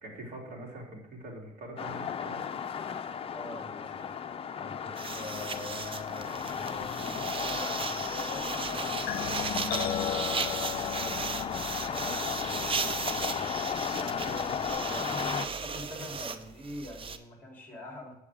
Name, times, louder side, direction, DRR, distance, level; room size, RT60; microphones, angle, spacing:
voice 1, 0.0-2.8 9.5-9.8, right 1 dB, 60° right, -2 dB, 3.4 m, -44 dB
sound 1, 1.8-15.5, left 7 dB, 35° left, 0.7 m, -34 dB
voice 2, 3.3-4.2 4.6-8.6 9.6-18.1, left 1 dB, 10° left, 0 dB, 3.5 m, -45 dB
sound 2, 5.0-17.2, right 5 dB, 30° right, 0.7 m, -36 dB
sound 3, 9.1-14.7, left 11 dB, 70° left, 0.7 m, -39 dB
8.3 x 7.9 x 3.7 m, 0.91 s
cardioid pair, 110°, 17 cm